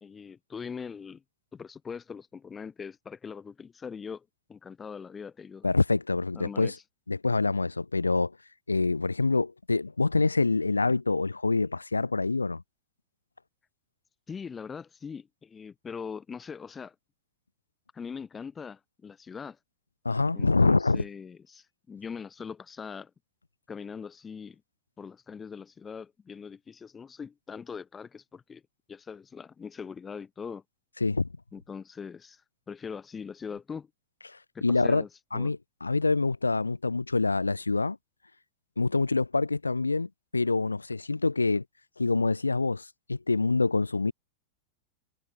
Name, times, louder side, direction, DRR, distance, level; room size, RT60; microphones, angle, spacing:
voice 1, 0.0-1.2 1.5-5.7 6.3-6.8 14.3-16.9 17.9-19.6 20.3-23.1 23.7-24.6 25.0-28.6 28.9-30.6 31.5-32.4 32.7-33.9 34.5-35.5, left 6 dB, 20° left, 0.7 m, -41 dB
voice 2, 5.6-6.8 7.1-8.3 8.7-12.6 20.0-21.0 31.0-31.3 34.3-35.0 35.3-38.0 38.8-41.6 42.0-44.1, left 3 dB, 80° left, 0.7 m, -26 dB
figure-of-eight pair, 90°, 0 cm